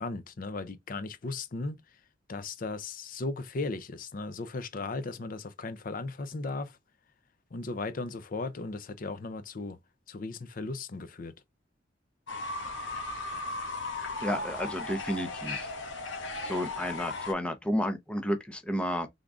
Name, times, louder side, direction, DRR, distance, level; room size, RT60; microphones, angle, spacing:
voice 1, 0.0-1.8 2.3-6.8 7.5-9.8 10.1-11.3, left 3 dB, 45° left, 0.5 m, -36 dB
Fowl / Bird, 12.3-17.3, left 2 dB, 85° left, 1.5 m, -36 dB
voice 2, 14.2-15.7 16.4-19.1, equal, 5° left, 0.6 m, -31 dB
3.6 x 3.6 x 3.6 m
head